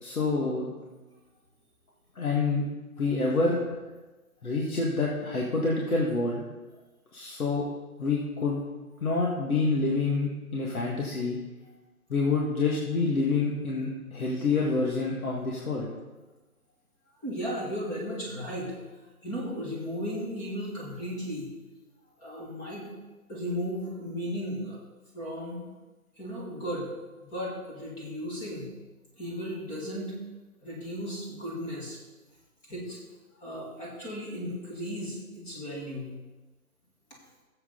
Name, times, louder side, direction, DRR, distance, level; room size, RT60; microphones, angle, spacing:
voice 1, 0.0-0.7 2.2-2.6 3.0-3.6 4.4-6.4 7.1-7.6 8.0-8.6 9.0-11.4 12.1-15.9, left 3 dB, 70° left, -3 dB, 2.1 m, -27 dB
voice 2, 17.2-18.8 19.2-21.5 22.2-22.9 23.3-24.8 25.1-25.6 26.2-26.9 27.2-28.7 29.2-30.2 30.6-32.0 32.7-33.0 33.4-36.2, equal, 10° left, -4 dB, 1.6 m, -35 dB
15.5 x 7.9 x 3.9 m, 1.2 s
hypercardioid pair, 160°, 44 cm